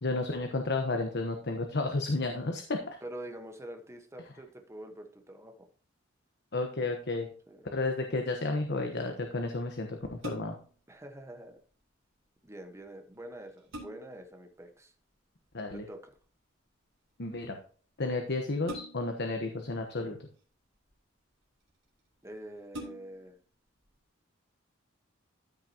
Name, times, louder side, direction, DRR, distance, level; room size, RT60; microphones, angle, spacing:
voice 1, 0.0-3.0 6.5-7.3 7.7-10.5 15.5-15.8 17.2-17.6 18.0-20.3, left 2 dB, 60° left, 4 dB, 1.1 m, -32 dB
voice 2, 3.0-5.7 7.5-7.7 10.9-11.6 12.4-14.9 15.7-16.1 22.2-23.4, right 1 dB, 15° right, 5 dB, 1.2 m, -46 dB
sound 1, 10.2-10.8 12.8-12.9 13.3-14.3 15.8-16.2 18.6-19.3 20.2-20.9 21.7-21.8 22.1-22.2 22.7-23.3 23.8-23.9, right 1 dB, 85° right, 3.8 m, -44 dB
13.5 x 6.2 x 2.9 m, 0.43 s
head